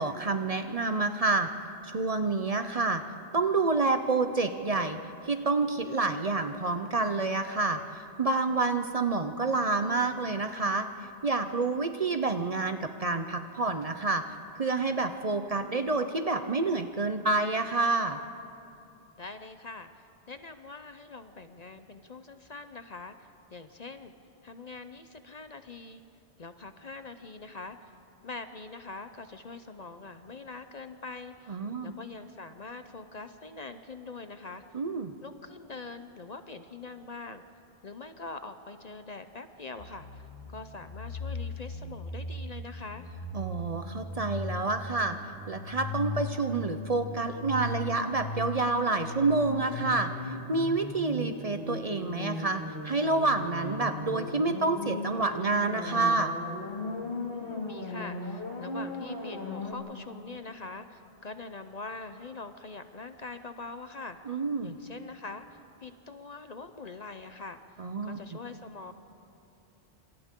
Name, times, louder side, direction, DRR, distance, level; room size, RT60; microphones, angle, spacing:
voice 1, 0.0-1.5 1.8-3.0 3.3-10.9 11.2-14.2 14.6-18.2 31.5-31.9 34.7-35.1 43.3-45.2 45.5-50.1 50.5-56.3 64.3-64.8 67.8-68.2, right 3 dB, 40° right, 8 dB, 0.7 m, -28 dB
voice 2, 19.2-19.9 20.3-24.1 24.4-26.0 26.4-27.8 28.2-34.6 35.2-37.4 37.8-43.1 57.3-67.6 68.0-68.9, left 3 dB, 45° left, 9 dB, 0.7 m, -43 dB
sound 1, 39.8-59.7, left 2 dB, 60° left, 2.5 m, -38 dB
27.5 x 27.0 x 3.7 m, 2.7 s
omnidirectional pair, 1.1 m